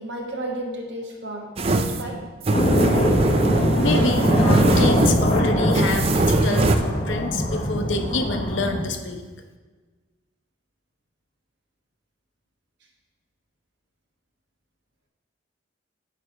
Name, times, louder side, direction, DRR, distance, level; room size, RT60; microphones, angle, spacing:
voice 1, 0.0-2.2, right 1 dB, 65° right, -1 dB, 1.2 m, -32 dB
sound 1, 1.6-6.8, right 2 dB, 30° right, 0.4 m, -22 dB
sound 2, 2.5-8.8, equal, 30° left, 0.9 m, -22 dB
voice 2, 3.8-9.2, left 2 dB, 70° left, 5 dB, 0.7 m, -27 dB
9.2 x 3.3 x 6.2 m, 1.4 s
head